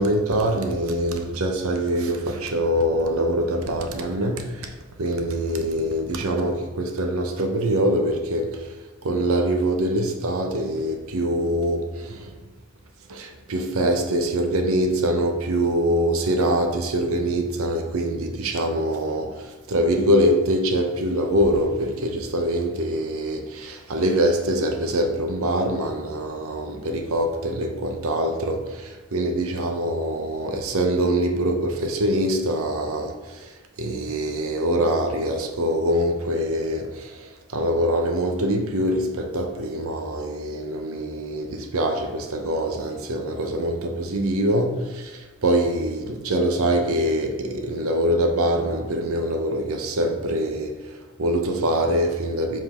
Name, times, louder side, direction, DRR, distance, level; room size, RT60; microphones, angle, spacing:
voice 1, 0.0-8.8 9.0-12.3 13.1-52.6, right 1 dB, 80° right, 0.7 m, -24 dB
5.2 x 3.8 x 4.9 m
head